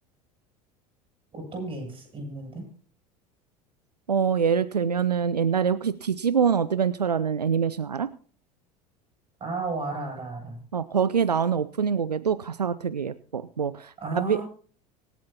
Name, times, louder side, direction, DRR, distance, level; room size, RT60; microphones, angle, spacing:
voice 1, 1.3-2.6 9.4-10.6 14.0-14.4, right 3 dB, 25° right, 2 dB, 7.9 m, -33 dB
voice 2, 4.1-8.1 10.7-14.4, right 7 dB, 85° right, 15 dB, 0.4 m, -25 dB
25.0 x 8.5 x 2.9 m, 0.43 s
figure-of-eight pair, 75°, 20 cm